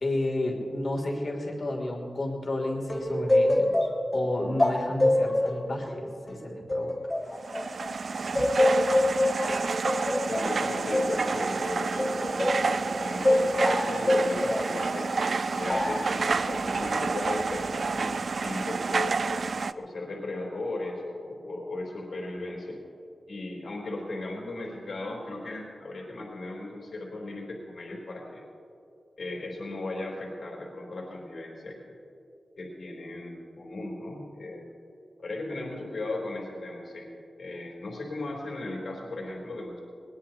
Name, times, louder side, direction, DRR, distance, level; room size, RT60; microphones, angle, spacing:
voice 1, 0.0-7.0, left 1 dB, 50° left, 0 dB, 3.0 m, -32 dB
sound 1, 2.9-7.9 8.3-12.7 13.2-14.7 15.7-16.1, left 1 dB, 20° left, 1.5 m, -25 dB
sound 2, 7.3-19.7, right 4 dB, 60° right, 0.4 m, -29 dB
voice 2, 10.3-19.3 19.8-22.8 23.3-28.4 29.2-31.9 32.6-34.7 35.2-37.1 37.4-39.8, left 2 dB, 70° left, -2 dB, 3.6 m, -36 dB
20.5 x 20.5 x 2.9 m, 2.7 s
wide cardioid pair, 115°, 0 cm